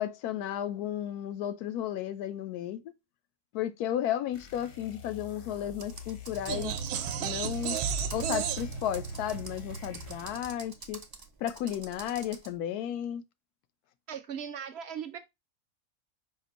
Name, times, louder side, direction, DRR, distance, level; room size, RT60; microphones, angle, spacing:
voice 1, 0.0-2.9 3.5-6.7 7.2-7.8 8.1-11.0 11.4-13.2, left 11 dB, 85° left, 1.1 m, -33 dB
sound 1, 4.3-10.6, left 8 dB, 70° left, 1.4 m, -48 dB
Computer keyboard, 5.8-12.5, right 3 dB, 35° right, 0.3 m, -47 dB
sound 2, 6.5-10.6, right 7 dB, 90° right, 1.1 m, -34 dB
voice 2, 14.1-15.2, right 8 dB, 65° right, 0.7 m, -38 dB
5.2 x 2.5 x 3.9 m
omnidirectional pair, 1.6 m